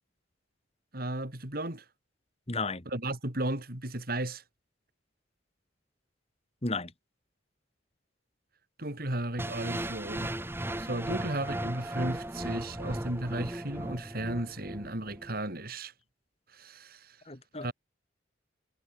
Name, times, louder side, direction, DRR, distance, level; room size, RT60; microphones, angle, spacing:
voice 1, 0.9-1.8 2.9-4.4 8.8-10.5 10.8-15.9 16.5-17.2 17.6-17.7, right 1 dB, 50° right, 4.3 m, -35 dB
voice 2, 2.5-2.8 6.6-6.9 17.3-17.7, left 3 dB, 35° left, 2.8 m, -33 dB
sound 1, 9.4-15.4, right 1 dB, 10° right, 1.8 m, -36 dB
head